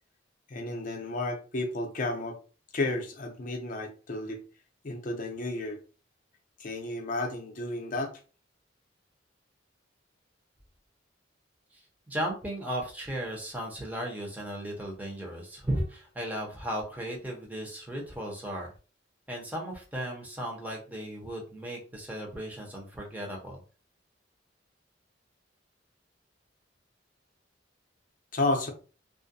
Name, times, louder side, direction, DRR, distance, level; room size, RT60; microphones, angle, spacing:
voice 1, 0.5-2.4 2.7-4.4 4.8-5.8 6.6-8.1 28.3-28.7, left 2 dB, 45° left, 0.5 m, -32 dB
voice 2, 12.1-18.7 19.3-23.6, right 1 dB, 10° right, 0.7 m, -35 dB
2.3 x 2.1 x 2.6 m
head